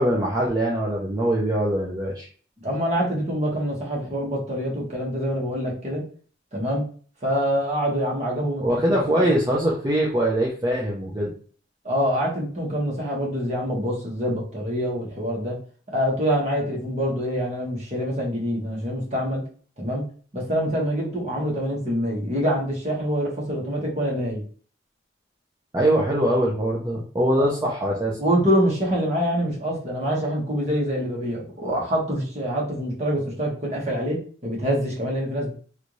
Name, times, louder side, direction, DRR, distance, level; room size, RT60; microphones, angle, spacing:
voice 1, 0.0-2.3 8.6-11.3 25.7-28.2, right 1 dB, 20° right, -4 dB, 0.6 m, -22 dB
voice 2, 2.6-6.0 6.5-6.9 7.2-9.3 11.8-15.6 15.9-19.4 19.8-20.1 20.3-24.4 28.2-35.5, equal, 40° right, -4 dB, 1.4 m, -25 dB
3.3 x 2.6 x 3.1 m, 0.43 s
head